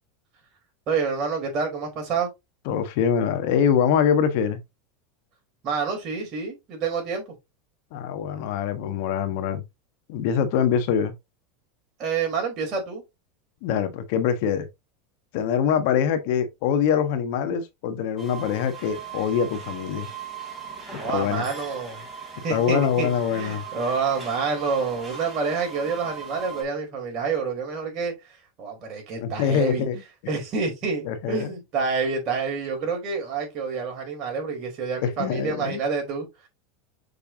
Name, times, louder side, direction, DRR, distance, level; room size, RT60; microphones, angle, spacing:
voice 1, 0.9-2.3 5.6-7.2 12.0-13.0 21.0-22.1 22.4-29.9 30.3-36.5, right 5 dB, 45° right, 4.5 m, -28 dB
voice 2, 2.6-4.6 7.9-9.6 10.1-11.1 13.6-14.7 15.3-20.1 21.1-21.4 22.5-23.6 29.2-30.0 31.1-31.5 35.0-35.8, left 8 dB, 65° left, 1.4 m, -24 dB
sound 1, 18.2-26.6, right 6 dB, 20° right, 3.8 m, -39 dB
6.8 x 5.0 x 2.9 m
supercardioid pair, 125°, 0 cm